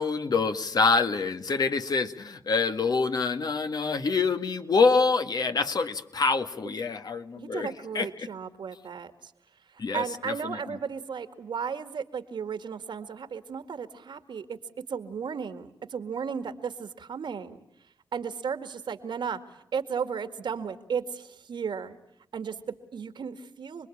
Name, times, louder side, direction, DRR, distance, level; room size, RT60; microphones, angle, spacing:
voice 1, 0.0-8.1 9.8-10.8, left 4 dB, 55° left, 8 dB, 1.8 m, -26 dB
voice 2, 7.4-9.3 9.7-14.6 14.9-17.6 18.1-19.4 19.7-22.0 22.3-23.9, right 6 dB, 75° right, 10 dB, 2.1 m, -35 dB
29.0 x 21.0 x 8.7 m, 0.76 s
cardioid pair, 75°, 8 cm